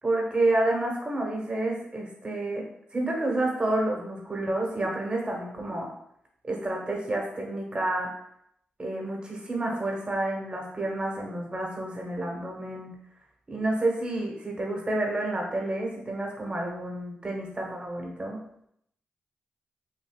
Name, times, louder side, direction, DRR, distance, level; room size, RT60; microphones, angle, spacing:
voice 1, 0.0-2.6 2.9-5.9 6.5-8.1 8.8-12.9 13.5-18.4, right 2 dB, 30° right, 0 dB, 1.1 m, -29 dB
5.9 x 2.7 x 2.3 m, 0.72 s
cardioid pair, 85°, 4 cm